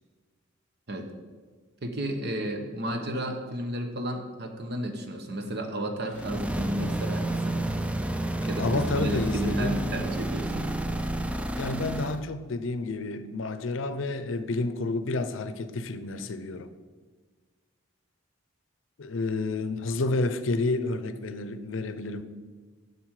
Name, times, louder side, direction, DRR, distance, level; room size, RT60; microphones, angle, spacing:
voice 1, 1.8-7.7 8.5-10.7, right 1 dB, 55° right, 1.0 m, -33 dB
sound 1, 6.1-12.2, right 1 dB, 5° right, 0.4 m, -30 dB
voice 2, 8.6-9.9 11.6-16.7 19.0-22.2, left 3 dB, 70° left, 0.6 m, -30 dB
7.4 x 7.0 x 4.8 m
head